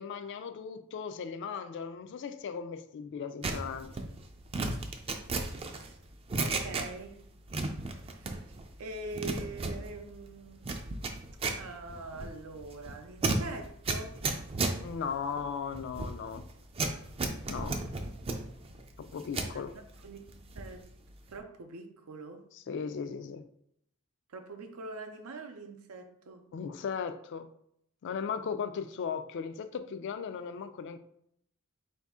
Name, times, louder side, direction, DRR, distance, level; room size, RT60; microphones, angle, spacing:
voice 1, 0.0-3.9 14.8-16.5 17.5-17.8 19.0-19.7 22.7-23.4 26.5-27.5 28.0-31.0, left 6 dB, 55° left, 0.3 m, -37 dB
sound 1, 3.4-7.2 7.5-8.7 8.9-19.6 20.0-20.8 21.1-21.4, right 3 dB, 25° right, 0.4 m, -35 dB
voice 2, 6.4-7.3 8.1-8.4 8.8-10.8 11.5-14.2 19.3-20.9 21.3-22.5 24.3-26.5, right 2 dB, 90° right, 0.5 m, -44 dB
4.0 x 2.6 x 3.5 m
head